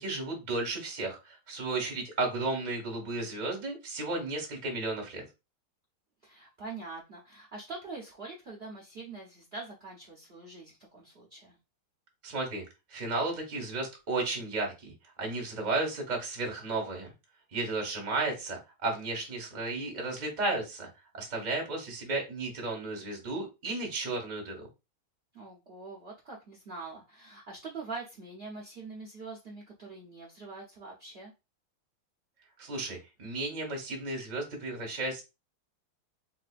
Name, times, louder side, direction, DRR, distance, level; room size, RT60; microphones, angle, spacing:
voice 1, 0.0-5.2 12.2-12.6 12.9-17.1 17.5-20.9 21.1-24.7 32.6-35.2, right 2 dB, 30° right, 1 dB, 0.8 m, -33 dB
voice 2, 6.2-11.6 25.3-31.3, right 3 dB, 65° right, -3 dB, 0.5 m, -44 dB
4.1 x 2.7 x 2.4 m, 0.26 s
omnidirectional pair, 2.3 m